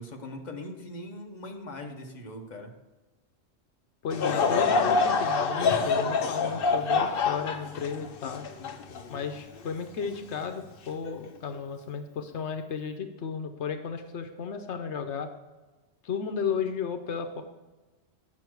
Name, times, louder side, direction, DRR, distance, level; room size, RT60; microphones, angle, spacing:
voice 1, 0.0-2.7, left 1 dB, 40° left, 2 dB, 1.2 m, -40 dB
voice 2, 4.0-8.5 9.1-15.3 16.0-17.4, left 6 dB, 85° left, 7 dB, 1.1 m, -34 dB
Laughter / Crowd, 4.1-9.6 10.1-10.2 11.0-11.3, left 4 dB, 60° left, 0.9 m, -26 dB
9.6 x 6.3 x 4.6 m, 1.2 s
omnidirectional pair, 1.1 m